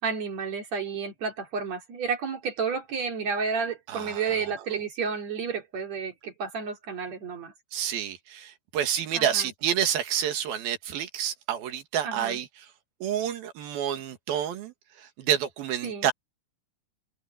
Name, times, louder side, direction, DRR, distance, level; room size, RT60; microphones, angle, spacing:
voice 1, 0.0-7.5 9.1-9.5 12.0-12.4 15.8-16.1, right 5 dB, 50° right, 3.7 m, -31 dB
voice 2, 3.9-4.5 7.7-12.5 13.0-14.7 15.2-16.1, right 9 dB, 85° right, 3.7 m, -29 dB
open air
omnidirectional pair, 4.1 m